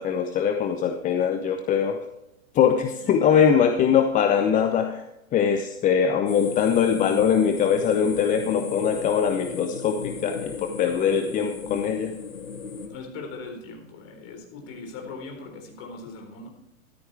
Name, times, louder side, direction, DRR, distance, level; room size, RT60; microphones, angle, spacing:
voice 1, 0.0-2.0 2.5-5.0 5.3-12.1, left 7 dB, 20° left, 6 dB, 0.8 m, -22 dB
sound 1, 6.2-12.9, left 5 dB, 75° left, 2.4 m, -35 dB
voice 2, 12.8-16.5, left 3 dB, 35° left, 2 dB, 4.2 m, -40 dB
13.5 x 13.5 x 3.5 m, 0.85 s
figure-of-eight pair, 110°, 41 cm